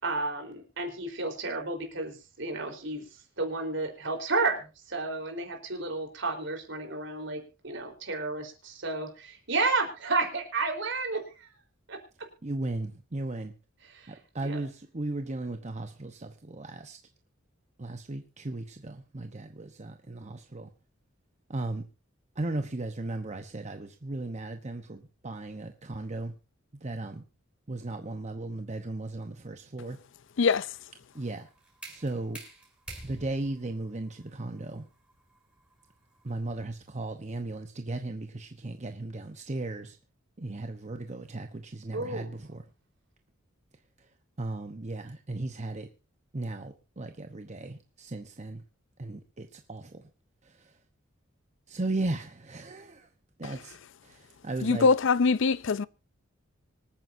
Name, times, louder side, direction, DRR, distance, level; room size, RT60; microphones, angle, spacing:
voice 1, 0.0-3.0 3.4-11.5 11.9-12.3 13.8-14.2 14.4-14.6 41.9-42.3, right 3 dB, 65° right, 4.0 m, -32 dB
voice 2, 12.4-13.5 14.1-17.0 17.8-20.7 21.5-21.8 22.4-26.3 26.8-27.2 27.7-30.0 31.2-31.5 31.9-32.4 33.0-34.8 36.2-39.9 40.4-42.3 44.4-45.9 46.3-48.6 49.0-49.8 51.7-53.0 53.4-53.7 54.4-54.9, right 2 dB, 35° right, 0.9 m, -36 dB
sound 1, 31.1-36.9, right 2 dB, 5° right, 6.1 m, -49 dB
voice 3, 54.6-55.9, left 4 dB, 65° left, 0.5 m, -23 dB
25.5 x 9.3 x 2.7 m
head